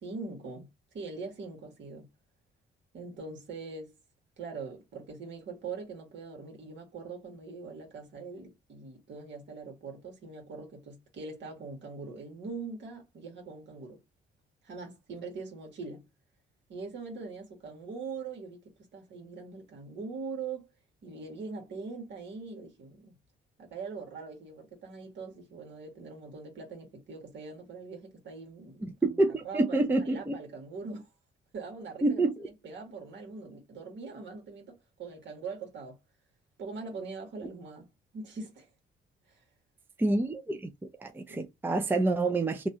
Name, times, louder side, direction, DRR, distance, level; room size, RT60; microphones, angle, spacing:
voice 1, 0.0-0.7 0.9-2.1 2.9-3.9 4.4-14.0 14.6-16.1 16.7-18.6 18.9-20.7 21.0-23.1 23.6-31.1 31.5-36.0 36.6-37.9 38.1-38.7 39.3-39.4 41.3-41.5, right 4 dB, 65° right, 1.6 m, -42 dB
voice 2, 29.0-30.3 32.0-32.3 40.0-40.6 41.0-42.7, right 2 dB, 10° right, 0.4 m, -27 dB
2.9 x 2.4 x 2.7 m
cardioid pair, 90°, 20 cm